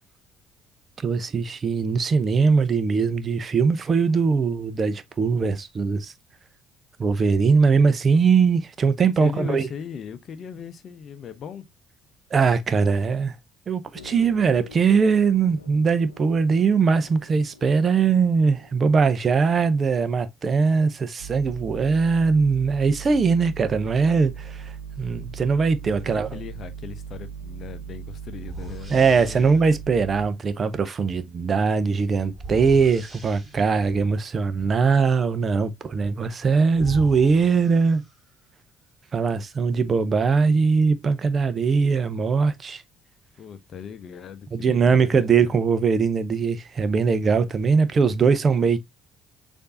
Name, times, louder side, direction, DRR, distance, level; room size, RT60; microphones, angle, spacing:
voice 1, 1.0-6.1 7.0-9.7 12.3-13.4 13.7-26.4 28.9-38.0 39.1-42.8 44.5-48.8, right 5 dB, 40° right, 0.6 m, -21 dB
voice 2, 9.2-11.7 25.8-29.8 43.4-45.5, left 7 dB, 50° left, 0.7 m, -38 dB
sound 1, 13.9-20.2, left 4 dB, 90° left, 0.7 m, -49 dB
sound 2, 21.2-30.3, right 7 dB, 80° right, 0.4 m, -38 dB
sound 3, 27.5-27.6 28.4-29.7 32.3-33.9 36.2-36.3 36.7-38.4, right 2 dB, 20° right, 2.2 m, -39 dB
6.6 x 2.7 x 2.5 m
figure-of-eight pair, 50°, 0 cm